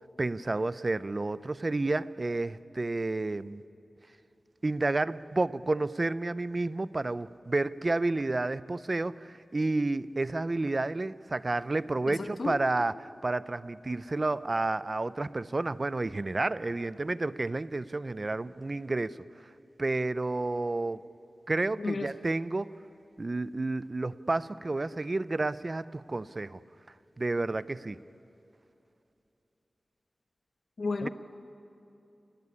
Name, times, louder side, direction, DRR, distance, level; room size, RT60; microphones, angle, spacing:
voice 1, 0.2-3.6 4.6-19.2 19.8-21.0 21.5-22.7 23.2-26.6 27.2-28.0 31.0-31.1, right 2 dB, 35° right, 17 dB, 0.6 m, -30 dB
voice 2, 12.1-12.6 21.8-22.1 30.8-31.1, left 3 dB, 65° left, 8 dB, 1.1 m, -32 dB
29.0 x 18.5 x 9.8 m, 2.8 s
wide cardioid pair, 100°, 0 cm